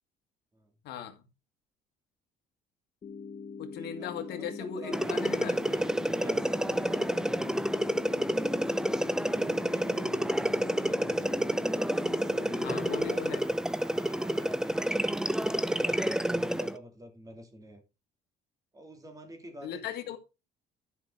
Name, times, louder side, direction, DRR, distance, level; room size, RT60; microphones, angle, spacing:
voice 1, 0.8-1.3 3.6-5.6 12.6-13.4 19.6-20.2, left 8 dB, 75° left, 1.9 m, -38 dB
sound 1, 3.0-13.0, left 5 dB, 35° left, 1.1 m, -43 dB
voice 2, 3.8-8.2 9.4-11.7 12.0-13.4 13.8-17.8 18.7-20.2, right 1 dB, 20° right, 3.0 m, -48 dB
sound 2, 4.9-16.8, right 1 dB, 5° right, 0.6 m, -29 dB
11.5 x 5.9 x 4.8 m
cardioid pair, 110°, 17 cm